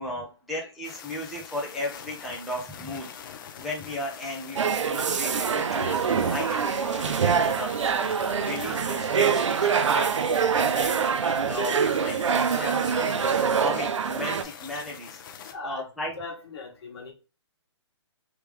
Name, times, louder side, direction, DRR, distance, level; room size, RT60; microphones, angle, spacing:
voice 1, 0.0-3.1 3.6-8.1 8.4-16.1, left 1 dB, ahead, -6 dB, 0.8 m, -36 dB
sound 1, 0.8-15.5, left 8 dB, 45° left, 0.6 m, -44 dB
sound 2, 4.5-14.4, right 6 dB, 85° right, 0.5 m, -25 dB
voice 2, 9.5-9.9 10.6-10.7 15.4-15.9 16.2-17.1, left 3 dB, 60° left, 3 dB, 1.3 m, -40 dB
3.4 x 3.3 x 3.2 m, 0.32 s
hypercardioid pair, 145°, 15 cm